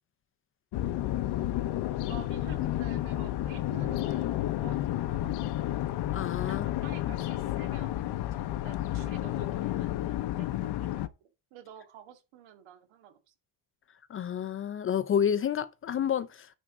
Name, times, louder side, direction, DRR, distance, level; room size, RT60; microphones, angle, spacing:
sound 1, 0.7-11.1, left 14 dB, 60° left, 0.8 m, -31 dB
voice 1, 2.0-5.9 6.4-13.3, right 9 dB, 85° right, 2.0 m, -50 dB
voice 2, 6.1-6.7 14.1-16.5, left 8 dB, 30° left, 0.5 m, -29 dB
9.9 x 3.7 x 5.9 m
cardioid pair, 155°, 45 cm